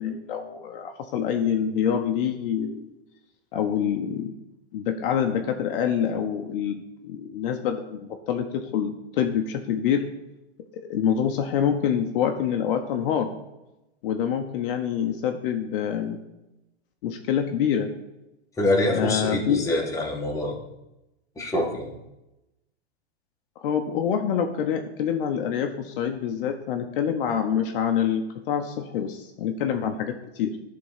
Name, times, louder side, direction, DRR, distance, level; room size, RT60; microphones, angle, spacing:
voice 1, 0.0-2.9 3.5-4.3 4.7-10.0 10.9-13.3 14.0-16.2 17.0-17.9 18.9-19.6 23.6-30.6, left 8 dB, 55° left, 5 dB, 0.9 m, -26 dB
voice 2, 18.6-20.6 21.4-21.9, left 1 dB, 10° left, -2 dB, 1.6 m, -25 dB
11.0 x 3.8 x 5.7 m, 0.95 s
hypercardioid pair, 125°, 33 cm